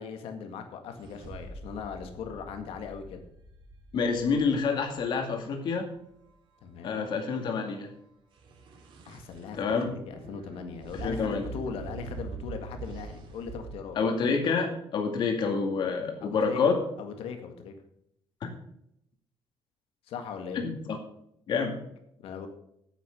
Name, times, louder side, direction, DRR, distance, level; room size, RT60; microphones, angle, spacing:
voice 1, 0.0-3.2 6.6-7.1 9.1-9.7 10.1-14.0 16.2-16.6 17.0-17.7 20.1-20.6 22.2-22.5, left 6 dB, 85° left, 6 dB, 1.9 m, -39 dB
sound 1, 1.0-5.1 8.4-13.7, right 4 dB, 60° right, 2.6 m, -44 dB
voice 2, 3.9-5.9 6.8-7.9 9.5-9.9 11.0-11.5 14.0-16.8 18.4-18.5 20.5-21.0 21.5-21.8, left 5 dB, 55° left, 3 dB, 2.2 m, -28 dB
9.3 x 8.8 x 6.6 m, 0.75 s
cardioid pair, 160°, 9 cm